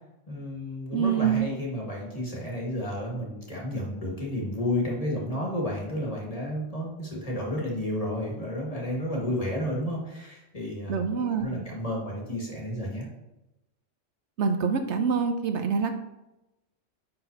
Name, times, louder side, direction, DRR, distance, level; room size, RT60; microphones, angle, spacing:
voice 1, 0.3-11.0 11.3-13.1, left 1 dB, 30° left, -2 dB, 1.6 m, -31 dB
voice 2, 0.9-1.5 10.9-11.7 14.4-15.9, right 6 dB, 70° right, 6 dB, 0.9 m, -26 dB
9.8 x 3.9 x 2.7 m, 0.94 s
omnidirectional pair, 1.3 m